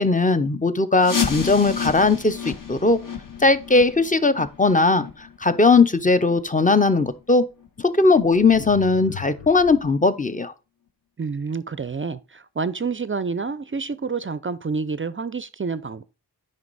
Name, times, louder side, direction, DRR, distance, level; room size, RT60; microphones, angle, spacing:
voice 1, 0.0-3.0 3.4-5.1 5.4-7.5 7.8-10.5, left 3 dB, 20° left, 0.7 m, -18 dB
sound 1, 1.0-6.6 6.9-7.0 7.6-7.7 8.3-8.4 8.9-9.0, left 7 dB, 50° left, 1.4 m, -31 dB
sound 2, 2.4-4.0 7.1-7.2 8.1-9.9, left 9 dB, 90° left, 1.1 m, -42 dB
voice 2, 11.2-16.0, right 5 dB, 30° right, 0.4 m, -28 dB
9.3 x 5.4 x 4.0 m
wide cardioid pair, 110°, 40 cm